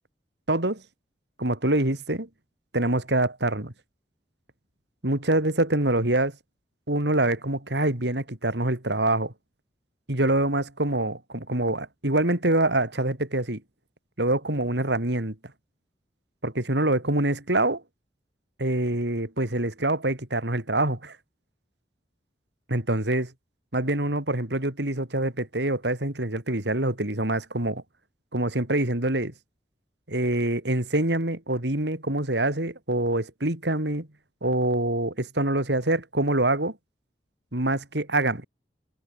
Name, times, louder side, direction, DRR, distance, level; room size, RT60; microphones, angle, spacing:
voice 1, 0.5-0.8 1.4-2.3 2.7-3.7 5.0-6.3 6.9-9.3 10.1-13.6 14.2-15.4 16.4-17.8 18.6-21.2 22.7-23.3 23.7-27.8 28.3-29.3 30.1-34.1 34.4-36.8 37.5-38.5, right 1 dB, 75° right, 3.7 m, -25 dB
head